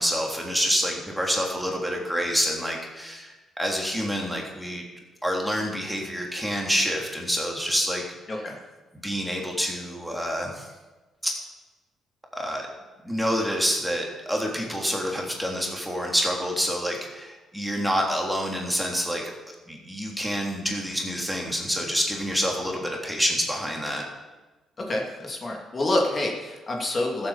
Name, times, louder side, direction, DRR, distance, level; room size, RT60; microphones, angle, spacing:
voice 1, 0.0-4.8 5.2-8.0 8.3-8.4 9.0-10.7 11.2-11.3 12.3-12.7 13.0-19.3 19.7-24.0, equal, 5° right, 0 dB, 3.2 m, -27 dB
voice 2, 24.8-27.3, left 1 dB, 35° left, 0 dB, 2.8 m, -27 dB
14.0 x 8.2 x 7.3 m, 1.2 s
cardioid pair, 90°, 0 cm